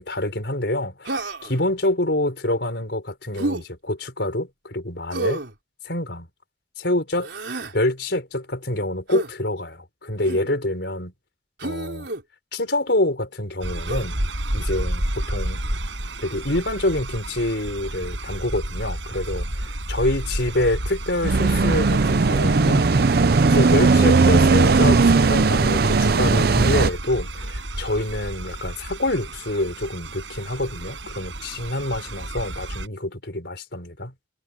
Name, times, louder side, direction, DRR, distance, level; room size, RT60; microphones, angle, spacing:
voice 1, 0.0-5.4 5.9-6.3 6.8-7.3 7.7-11.1 11.6-12.1 12.5-14.1 14.5-15.6 16.2-19.5 19.9-22.9 23.4-34.1, left 1 dB, 65° left, 5.4 m, -26 dB
Human voice, 1.1-1.6 3.4-3.6 5.1-5.5 7.2-7.8 9.1-9.3 10.2-10.5 11.6-12.2 13.9-14.1, right 2 dB, 70° right, 4.1 m, -29 dB
sound 1, 13.6-32.9, right 1 dB, 90° right, 7.7 m, -31 dB
sound 2, 21.2-26.9, right 4 dB, 55° right, 0.6 m, -17 dB
head